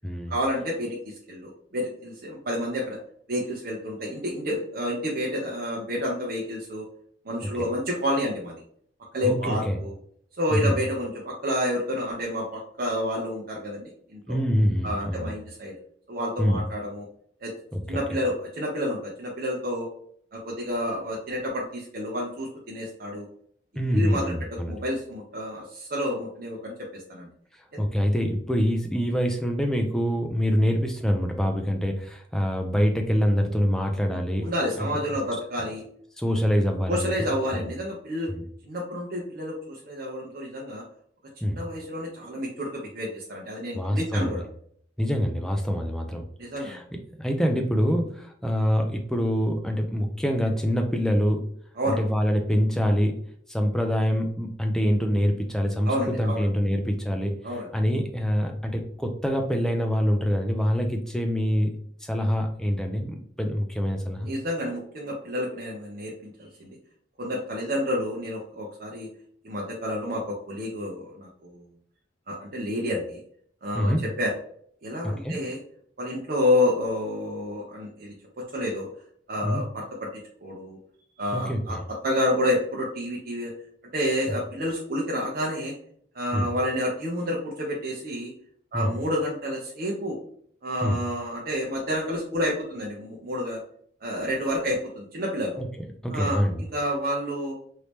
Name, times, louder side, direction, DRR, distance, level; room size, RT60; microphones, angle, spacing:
voice 1, 0.3-3.0 3.3-6.8 7.2-8.6 9.1-9.9 10.4-14.4 14.8-15.8 16.1-17.1 17.4-17.5 17.9-19.9 20.3-23.3 23.9-27.3 27.7-27.8 34.1-35.8 36.9-38.3 38.6-40.8 41.5-44.4 46.4-46.8 51.8-52.0 55.8-56.4 57.4-57.7 64.2-66.8 67.2-69.1 69.4-71.6 72.3-73.2 73.6-73.9 74.2-74.3 74.8-75.6 76.0-78.9 79.3-79.8 80.4-80.8 81.2-81.8 82.0-83.5 83.9-85.7 86.1-88.3 88.7-90.2 90.6-93.6 94.0-95.6 96.1-97.6, left 1 dB, 50° right, -3 dB, 0.7 m, -29 dB
voice 2, 9.2-9.8 10.5-10.7 14.3-15.3 16.4-16.6 17.7-18.0 23.8-24.7 27.8-34.5 36.2-37.1 37.6-37.7 38.3-38.4 41.4-41.6 43.7-44.4 45.0-46.2 46.6-46.8 47.2-51.5 51.9-53.2 53.5-55.9 56.2-57.3 57.7-61.7 62.0-64.3 73.8-74.0 75.0-75.4 79.4-79.6 81.3-81.8 86.3-86.5 88.7-88.9 90.8-91.0 96.0-96.6, equal, 5° left, 3 dB, 0.4 m, -25 dB
3.1 x 2.8 x 3.3 m, 0.62 s
head